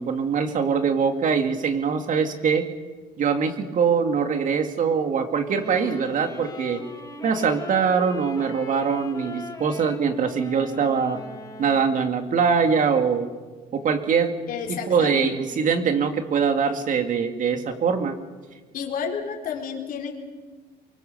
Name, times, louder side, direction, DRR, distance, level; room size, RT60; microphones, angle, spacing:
voice 1, 0.0-2.6 3.2-6.8 7.2-11.2 11.6-13.3 13.7-14.3 14.7-18.1, right 6 dB, 50° right, 6 dB, 2.5 m, -23 dB
Wind instrument woodwind instrument, 5.5-12.3, left 3 dB, 20° left, 2.8 m, -39 dB
voice 2, 14.5-15.3 18.7-20.2, left 7 dB, 55° left, 0 dB, 4.2 m, -31 dB
24.0 x 23.0 x 6.9 m, 1.3 s
cardioid pair, 110°, 17 cm